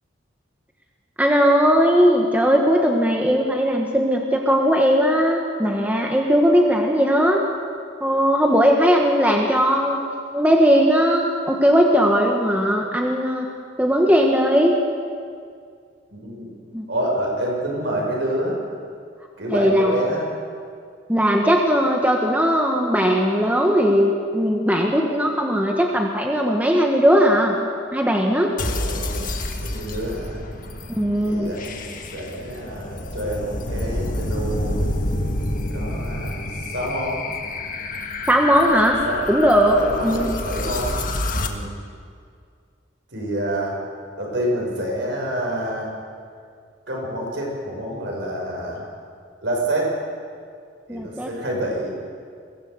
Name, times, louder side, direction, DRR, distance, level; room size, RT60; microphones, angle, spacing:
voice 1, 1.2-7.4 8.0-10.0 10.3-13.5 13.8-14.7 16.7-16.8 19.5-19.9 21.1-27.6 27.9-28.5 30.9-31.5 38.3-39.0 39.3-40.3 50.9-51.3, equal, 10° right, 1 dB, 1.5 m, -18 dB
voice 2, 16.1-16.5 16.9-18.6 19.4-20.3 28.7-29.3 29.6-30.5 31.2-34.8 35.7-37.2 39.1-39.2 39.7-41.7 43.1-43.8 44.2-45.9 46.9-48.9 49.4-49.9 50.9-52.0, right 1 dB, 60° right, -1 dB, 6.0 m, -27 dB
sound 1, 28.6-41.5, left 1 dB, 45° left, 1.6 m, -28 dB
23.0 x 16.5 x 8.0 m, 2.2 s
head